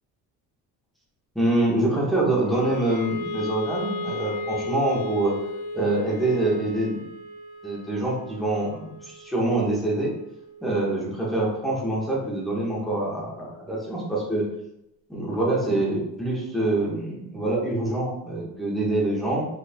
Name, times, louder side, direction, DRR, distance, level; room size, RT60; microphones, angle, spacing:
voice 1, 1.3-5.3 5.7-7.0 7.6-10.1 10.6-14.4 15.1-19.5, right 2 dB, ahead, -5 dB, 1.4 m, -25 dB
Wind instrument woodwind instrument, 2.4-14.6, left 2 dB, 55° left, 1.1 m, -37 dB
4.7 x 4.6 x 2.3 m, 0.82 s
cardioid pair, 140°, 33 cm